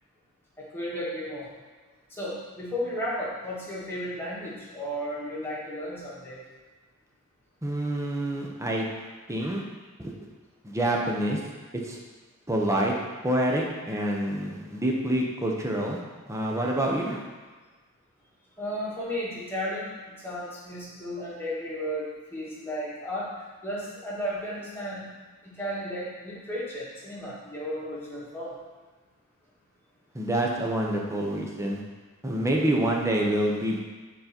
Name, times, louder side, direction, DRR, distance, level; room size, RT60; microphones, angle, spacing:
voice 1, 0.6-1.5 2.1-6.4 18.6-23.3 23.6-25.1 25.4-28.5, equal, 10° left, -8 dB, 1.9 m, -34 dB
voice 2, 7.6-8.8 9.3-9.6 10.0-10.1 10.6-11.4 11.8-12.0 12.5-12.9 13.2-16.0 16.3-17.2 30.1-31.8 32.2-33.8, right 1 dB, 15° right, -1 dB, 0.9 m, -27 dB
9.4 x 4.0 x 4.4 m, 1.3 s
head